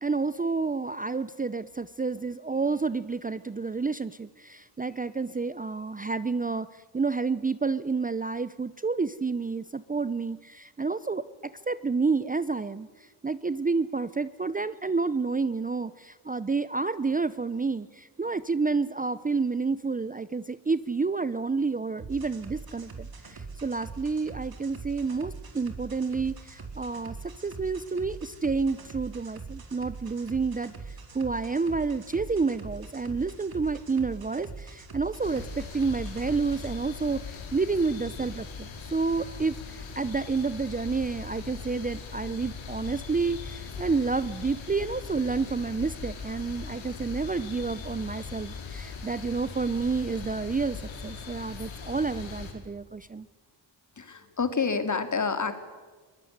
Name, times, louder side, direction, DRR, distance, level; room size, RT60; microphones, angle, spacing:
voice 1, 0.0-27.2 27.4-53.3, right 4 dB, 20° right, 15 dB, 0.7 m, -29 dB
sound 1, 22.0-36.7, right 4 dB, 50° right, 4.2 m, -43 dB
sound 2, 35.2-52.5, left 5 dB, 80° left, 5.2 m, -40 dB
voice 2, 54.0-55.5, left 5 dB, 40° left, 9 dB, 3.0 m, -28 dB
23.0 x 19.5 x 9.5 m, 1.4 s
cardioid pair, 70°, 46 cm